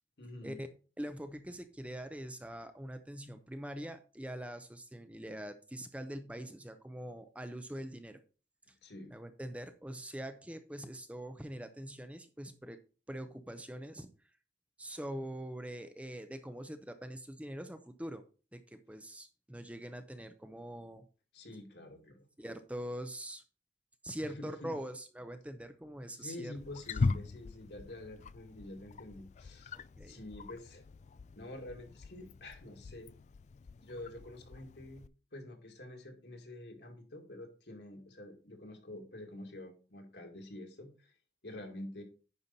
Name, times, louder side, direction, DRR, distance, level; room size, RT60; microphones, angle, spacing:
voice 1, 0.2-0.6 8.8-9.1 21.3-22.2 24.2-24.7 26.1-29.8 30.0-30.8 31.3-33.1 33.8-35.1 35.3-41.1 41.4-42.0, left 1 dB, 70° left, 3 dB, 2.2 m, -47 dB
voice 2, 1.0-8.2 8.7-8.8 9.1-12.8 13.1-14.1 14.8-18.2 18.5-21.1 22.4-23.4 24.0-26.5 30.0-30.2, right 1 dB, 10° right, 8 dB, 0.6 m, -43 dB
Wild animals, 26.6-35.1, left 4 dB, 40° left, 0.3 m, -40 dB
9.8 x 5.5 x 4.1 m, 0.36 s
head